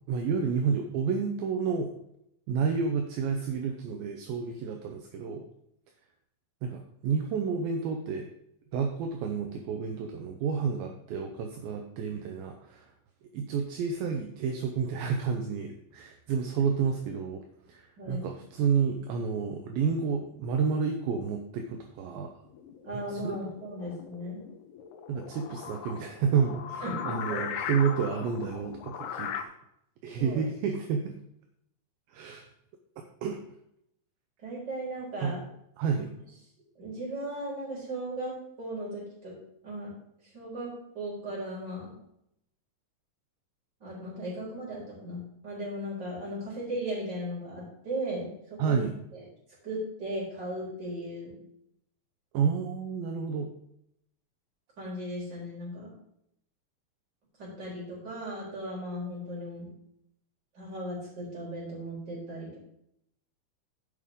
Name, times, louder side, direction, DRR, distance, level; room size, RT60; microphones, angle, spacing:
voice 1, 0.1-1.9 2.5-5.5 6.6-8.3 8.7-12.9 13.3-22.3 22.9-23.4 25.1-29.5 30.0-31.1 32.1-32.5 33.2-33.4 35.2-35.4 35.8-36.1 48.6-48.9 52.3-53.5, right 6 dB, 75° right, 4 dB, 2.5 m, -30 dB
voice 2, 18.0-18.3 22.8-24.4 26.8-27.5 30.2-30.4 34.4-35.5 36.8-39.3 39.6-39.9 40.3-41.9 43.8-48.3 48.6-48.8 49.1-49.2 49.6-51.4 54.8-55.9 57.4-59.7 60.5-62.6, right 1 dB, 30° right, -5 dB, 4.3 m, -37 dB
sound 1, 22.5-29.4, left 8 dB, 90° left, 2.9 m, -39 dB
15.0 x 5.4 x 3.6 m, 0.77 s
omnidirectional pair, 4.4 m